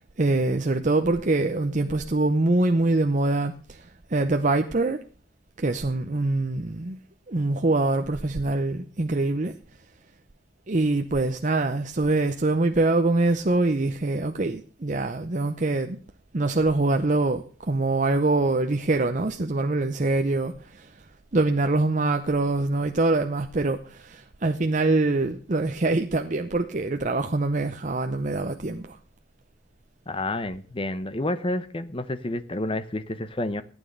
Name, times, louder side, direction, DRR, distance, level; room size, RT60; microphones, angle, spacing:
voice 1, 0.2-5.0 5.6-7.0 7.3-9.5 10.7-16.0 16.3-21.0 21.3-29.0, right 2 dB, 40° right, 0.7 m, -24 dB
voice 2, 30.1-33.6, left 1 dB, 25° left, 0.9 m, -29 dB
14.5 x 9.3 x 6.6 m
head